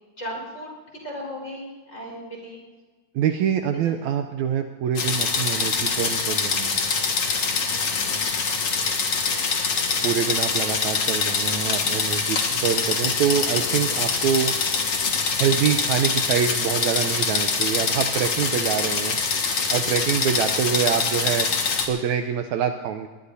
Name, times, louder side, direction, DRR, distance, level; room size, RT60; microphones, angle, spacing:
voice 1, 0.2-0.7 1.0-2.6 3.7-3.9 8.0-8.3, equal, 20° left, -3 dB, 4.7 m, -36 dB
voice 2, 3.2-6.8 10.0-14.5 15.4-19.2 19.7-21.5 21.9-23.1, right 8 dB, 75° right, 6 dB, 1.9 m, -25 dB
sound 1, 5.0-21.9, left 5 dB, 50° left, 2.4 m, -24 dB
21.5 x 20.0 x 2.7 m, 1.3 s
omnidirectional pair, 3.7 m